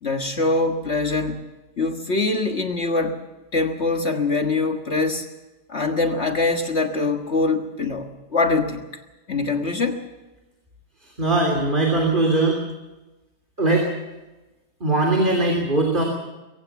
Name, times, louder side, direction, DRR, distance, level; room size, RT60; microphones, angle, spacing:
voice 1, 0.0-1.4 1.8-3.2 3.5-5.3 5.7-9.0 9.3-10.0, left 3 dB, 45° left, 4 dB, 1.8 m, -23 dB
voice 2, 11.2-12.6 13.6-13.9 14.8-16.0, right 2 dB, 30° right, 1 dB, 3.3 m, -20 dB
23.0 x 17.0 x 7.2 m, 1.1 s
omnidirectional pair, 1.6 m